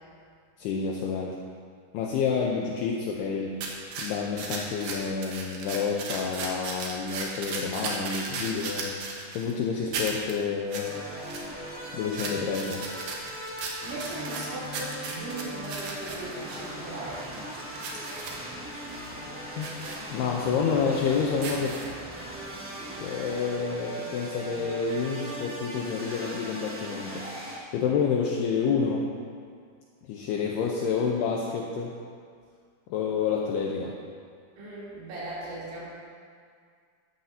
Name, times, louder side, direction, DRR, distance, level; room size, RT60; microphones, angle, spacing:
voice 1, 0.6-1.4 1.9-3.6 4.0-8.9 9.3-11.0 11.9-12.8 19.6-19.8 20.1-21.8 23.0-27.2 27.7-29.1 30.1-31.9 32.9-34.0, left 6 dB, 75° left, -2 dB, 2.5 m, -29 dB
sound 1, 3.6-9.5 9.9-10.3 10.7-10.9 11.2-11.8 12.1-16.6 17.1-18.4 18.8-19.1 19.6-20.0 20.5-20.6 21.3-22.1 22.6-22.7, right 4 dB, 65° right, 2.7 m, -36 dB
sound 2, 10.8-27.6, equal, 5° right, 0.9 m, -39 dB
voice 2, 13.8-17.3 34.6-35.9, right 2 dB, 85° right, -10 dB, 5.6 m, -38 dB
14.0 x 13.0 x 2.8 m, 2.1 s
omnidirectional pair, 5.2 m